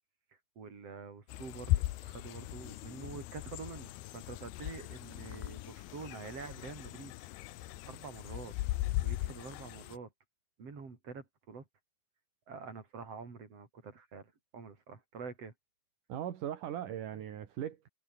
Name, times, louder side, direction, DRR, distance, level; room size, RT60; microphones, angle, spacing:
voice 1, 0.5-7.1 7.9-8.5 9.0-10.1 10.6-11.6 12.5-15.5, right 5 dB, 30° right, 5.1 m, -47 dB
sound 1, 1.3-10.0, left 16 dB, 75° left, 2.5 m, -38 dB
voice 2, 16.1-17.9, right 10 dB, 55° right, 2.7 m, -39 dB
omnidirectional pair, 5.5 m